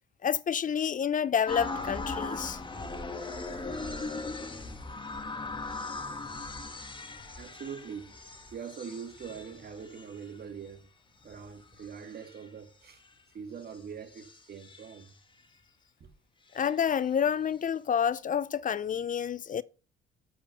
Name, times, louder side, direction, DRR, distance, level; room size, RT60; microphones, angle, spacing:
voice 1, 0.2-2.6 16.5-19.6, left 8 dB, 40° left, 0.6 m, -29 dB
sound 1, 1.5-10.6 11.2-12.5 13.7-13.8 14.1-15.0, left 3 dB, 25° left, 1.9 m, -39 dB
voice 2, 7.4-8.2 8.5-10.9 11.2-13.0 13.3-15.1 16.0-16.1, right 7 dB, 50° right, 2.0 m, -43 dB
8.6 x 5.2 x 6.6 m
cardioid pair, 90°, 20 cm